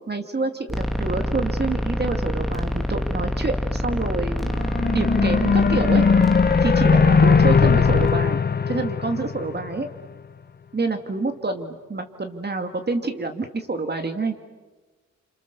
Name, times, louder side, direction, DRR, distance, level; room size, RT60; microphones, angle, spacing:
voice 1, 0.1-4.6 4.9-6.1 6.6-8.4 8.7-9.9 10.7-14.3, right 3 dB, 35° right, 6 dB, 2.3 m, -27 dB
sound 1, 0.7-8.1, equal, ahead, 2.2 m, -26 dB
sound 2, 4.4-9.9, left 5 dB, 30° left, 0.8 m, -19 dB
29.0 x 26.0 x 7.0 m, 1.3 s
cardioid pair, 70°, 31 cm